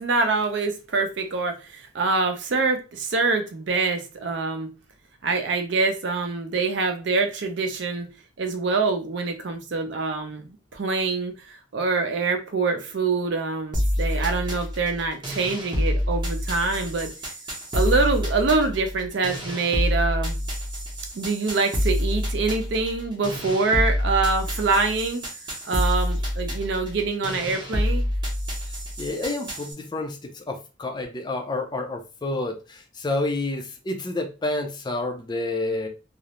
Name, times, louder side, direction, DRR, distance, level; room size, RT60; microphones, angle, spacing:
voice 1, 0.0-4.7 5.2-8.1 8.4-17.1 17.7-20.3 21.1-25.2 25.6-28.1, right 3 dB, 60° right, 6 dB, 0.5 m, -25 dB
sound 1, 13.7-29.7, equal, 25° right, 0.7 m, -27 dB
voice 2, 28.6-35.9, left 2 dB, 20° left, 4 dB, 0.4 m, -29 dB
2.4 x 2.0 x 2.9 m, 0.31 s
head